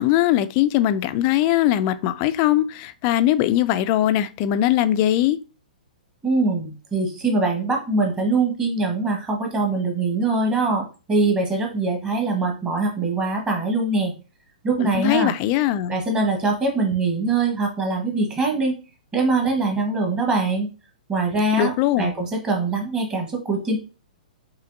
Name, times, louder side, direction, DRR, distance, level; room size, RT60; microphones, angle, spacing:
voice 1, 0.0-5.4 14.8-16.0 21.6-22.1, left 13 dB, 35° left, 0.3 m, -20 dB
voice 2, 6.2-14.1 14.6-15.3 15.9-18.7 19.1-20.7 21.1-23.8, right 3 dB, 15° right, 1.2 m, -23 dB
5.8 x 2.7 x 2.5 m
figure-of-eight pair, 110°, 4 cm